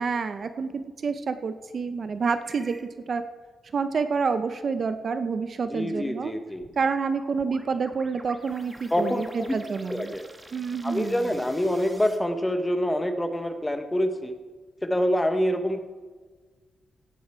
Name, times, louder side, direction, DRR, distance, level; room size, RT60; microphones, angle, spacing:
voice 1, 0.0-2.8 3.1-3.2 3.7-6.3 6.8-10.1 10.5-11.2, right 5 dB, 40° right, 10 dB, 0.6 m, -28 dB
sound 1, 2.4-2.9 6.6-12.2, right 1 dB, 15° right, 1.2 m, -48 dB
voice 2, 5.7-6.7 8.9-9.6 9.9-10.3 10.8-14.3 14.8-15.8, equal, 10° left, 7 dB, 1.0 m, -26 dB
16.5 x 9.2 x 4.4 m, 1.4 s
wide cardioid pair, 160°, 0 cm